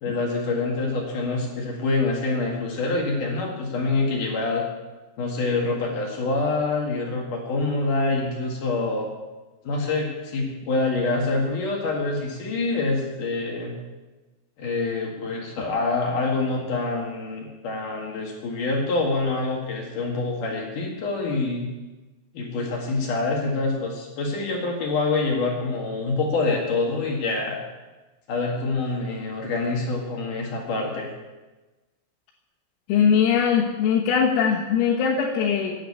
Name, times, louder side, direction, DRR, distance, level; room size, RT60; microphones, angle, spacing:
voice 1, 0.0-4.6 5.2-9.1 9.6-13.8 14.6-21.7 22.3-27.6 28.3-31.1, left 3 dB, 55° left, 0 dB, 2.6 m, -26 dB
voice 2, 32.9-35.8, left 7 dB, 85° left, -4 dB, 4.1 m, -21 dB
11.5 x 10.0 x 8.6 m, 1.2 s
omnidirectional pair, 5.9 m